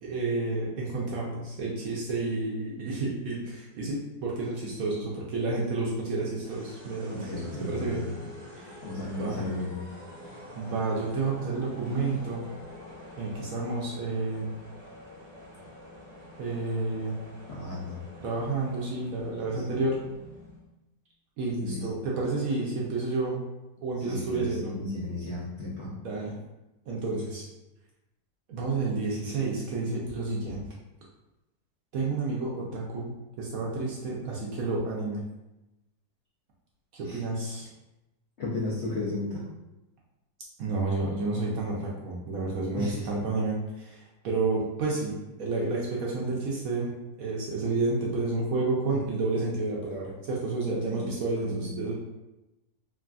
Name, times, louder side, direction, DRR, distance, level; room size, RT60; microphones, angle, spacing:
voice 1, 0.0-8.0 8.5-8.8 9.1-9.4 10.6-12.5 13.2-14.5 16.4-17.2 18.2-20.0 21.4-23.4 23.8-24.7 25.9-26.4 26.9-27.5 28.5-30.6 31.9-35.2 36.9-37.7 40.6-45.1 45.4-46.9 47.2-51.9, right 3 dB, 70° right, -4 dB, 0.9 m, -30 dB
sound 1, 6.4-20.7, left 1 dB, 45° right, 1.1 m, -47 dB
voice 2, 7.1-8.3 8.8-9.8 17.5-18.0 19.5-19.6 21.6-21.9 24.0-25.9 37.0-37.2 38.4-39.4 42.7-43.0 50.7-51.1 51.4-51.7, left 2 dB, 75° left, -7 dB, 0.6 m, -34 dB
3.2 x 2.4 x 2.2 m, 0.98 s
omnidirectional pair, 1.8 m